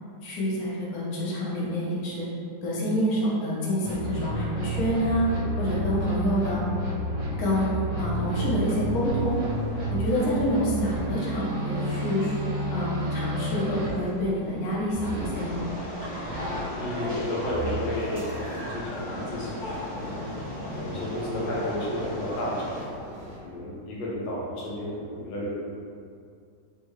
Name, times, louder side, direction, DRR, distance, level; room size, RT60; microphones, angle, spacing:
voice 1, 0.2-2.3 2.6-5.3 5.6-6.6 7.4-9.4 9.9-12.4 12.7-15.6, equal, 65° left, -6 dB, 1.1 m, -27 dB
sound 1, 3.8-13.9 14.9-15.3 16.2-16.7 17.3-17.7, right 1 dB, 55° right, 1.2 m, -31 dB
sound 2, 8.8-23.4, equal, 75° right, 0.6 m, -45 dB
sound 3, 15.3-22.8, left 1 dB, 45° left, 0.5 m, -35 dB
voice 2, 16.8-20.1 20.7-22.7 23.4-25.5, left 1 dB, 85° left, -5 dB, 1.4 m, -32 dB
3.6 x 2.2 x 3.0 m, 2.3 s
omnidirectional pair, 1.9 m